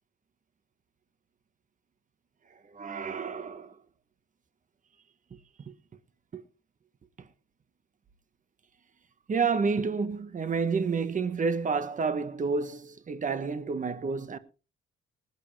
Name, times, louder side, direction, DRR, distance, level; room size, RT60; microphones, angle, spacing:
voice 1, 2.7-3.7 5.7-5.8 6.3-6.4 9.3-14.4, right 5 dB, 40° right, 1.6 m, -29 dB
19.5 x 10.0 x 3.5 m
cardioid pair, 90°, 20 cm